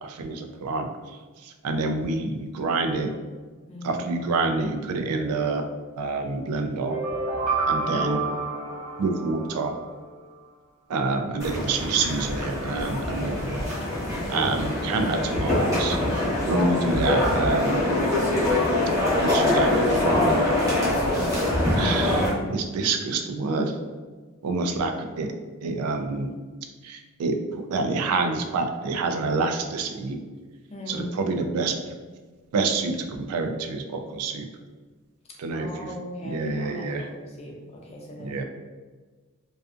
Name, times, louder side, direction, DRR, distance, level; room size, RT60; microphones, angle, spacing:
voice 1, 0.0-0.9 1.6-3.1 3.8-5.6 6.0-7.0 7.7-8.2 9.0-9.7 10.9-13.7 14.3-17.8 19.2-20.5 21.8-23.7 24.4-24.9 25.2-25.3 25.6-26.3 26.8-27.4 27.7-30.2 30.9-31.7 32.5-32.9 33.3-34.4 35.4-35.7 36.2-37.0 38.2-38.4, right 3 dB, 90° right, 5 dB, 0.3 m, -27 dB
voice 2, 3.7-4.1 7.8-8.1 30.7-31.1 35.5-38.4, left 1 dB, 30° left, -1 dB, 0.4 m, -39 dB
sound 1, 6.8-9.8, right 3 dB, 65° right, 0.8 m, -28 dB
sound 2, 11.4-22.3, left 1 dB, 15° right, 0.7 m, -24 dB
2.4 x 2.4 x 2.4 m, 1.4 s
head